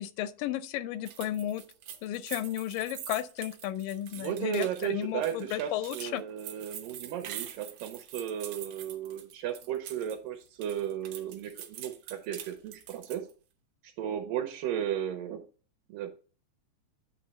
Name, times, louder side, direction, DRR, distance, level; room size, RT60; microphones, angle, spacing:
voice 1, 0.0-1.6 2.0-6.2, left 12 dB, 85° left, 2.2 m, -33 dB
sound 1, 1.1-10.2 10.5-13.3, right 10 dB, 70° right, 1.7 m, -44 dB
voice 2, 4.1-13.3 13.8-15.4 15.9-16.1, right 10 dB, 90° right, 2.5 m, -35 dB
9.1 x 3.1 x 6.4 m
omnidirectional pair, 3.8 m